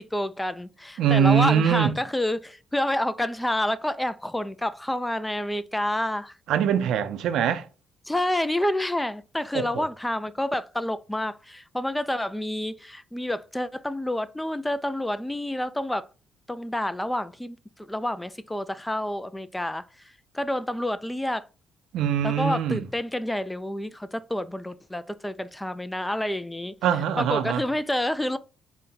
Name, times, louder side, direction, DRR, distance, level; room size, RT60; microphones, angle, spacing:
voice 1, 0.0-6.3 8.1-16.1 16.5-19.9 20.3-21.4 22.2-26.7 27.2-28.4, left 1 dB, 10° left, 0.3 m, -28 dB
voice 2, 1.0-1.9 6.5-7.7 9.5-9.8 21.9-22.9 26.8-27.6, right 8 dB, 80° right, 0.5 m, -23 dB
4.0 x 2.2 x 3.8 m
cardioid pair, 90°, 0 cm